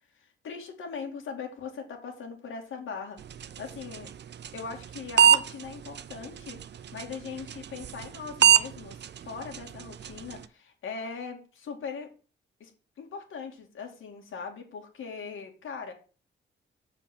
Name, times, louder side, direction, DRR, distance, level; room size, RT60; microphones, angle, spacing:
voice 1, 0.2-4.1 4.5-6.6 6.9-12.1 12.6-12.7 13.0-15.9, left 5 dB, 80° left, 2 dB, 2.5 m, -40 dB
sound 1, 3.2-10.5, right 9 dB, 60° right, 0.6 m, -27 dB
7.2 x 5.4 x 7.4 m, 0.36 s
cardioid pair, 120°, 21 cm